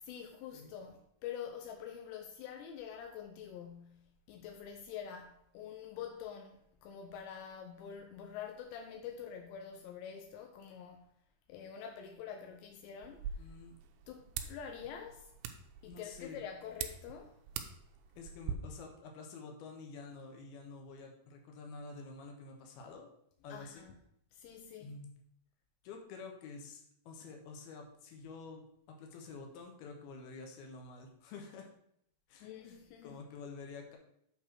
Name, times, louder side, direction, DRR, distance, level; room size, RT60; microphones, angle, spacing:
voice 1, 0.0-11.1 11.5-13.5 14.1-15.3 15.8-17.4 23.5-24.0 24.3-25.0 32.4-33.2, left 8 dB, 85° left, 2.9 m, -46 dB
sound 1, 13.0-18.5, right 8 dB, 80° right, 2.4 m, -44 dB
voice 2, 13.4-13.7 15.9-16.4 18.1-23.1 23.4-23.9 24.8-25.1 25.8-28.6 28.9-31.7 32.3-32.8 33.0-34.0, left 4 dB, 70° left, 3.1 m, -49 dB
8.5 x 4.5 x 6.0 m
omnidirectional pair, 5.0 m